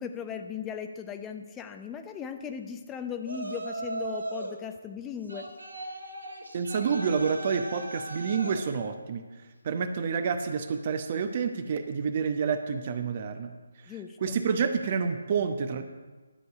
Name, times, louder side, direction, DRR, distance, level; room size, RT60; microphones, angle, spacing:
voice 1, 0.0-5.5 13.9-14.3, left 7 dB, 10° left, 7 dB, 0.7 m, -37 dB
Yell, 3.2-4.6 5.3-8.7, right 2 dB, 80° right, 2.2 m, -38 dB
voice 2, 6.5-9.2 9.6-13.5 13.9-14.0 14.2-15.8, right 6 dB, 35° right, 8 dB, 0.9 m, -28 dB
12.5 x 8.0 x 4.8 m, 1.3 s
figure-of-eight pair, 150°, 0 cm